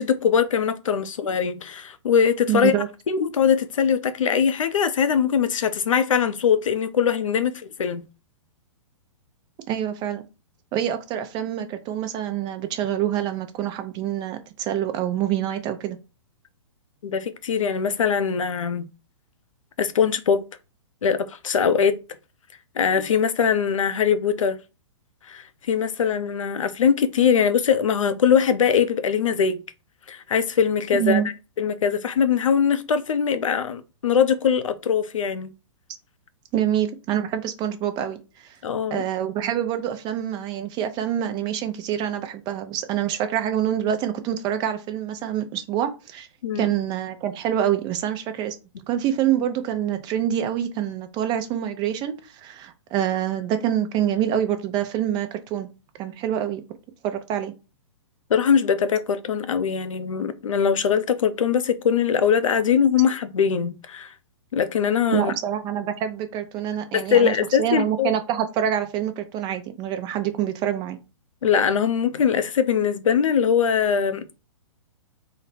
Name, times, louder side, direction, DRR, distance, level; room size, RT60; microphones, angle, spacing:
voice 1, 0.0-2.7 3.1-8.0 17.0-18.9 19.8-20.4 21.0-22.0 22.8-24.6 25.3-29.6 30.1-31.2 31.6-35.5 38.6-39.0 46.4-46.7 58.3-64.1 64.5-65.3 66.9-68.1 71.4-74.3, left 7 dB, 80° left, 0.6 m, -22 dB
voice 2, 2.5-2.9 9.7-10.2 10.7-16.0 30.9-31.3 36.5-38.2 38.4-38.5 38.9-46.3 46.6-48.6 48.9-55.7 56.0-56.6 57.0-57.5 65.1-71.0, right 10 dB, 25° right, 0.6 m, -26 dB
4.0 x 2.1 x 4.1 m
hypercardioid pair, 130°, 16 cm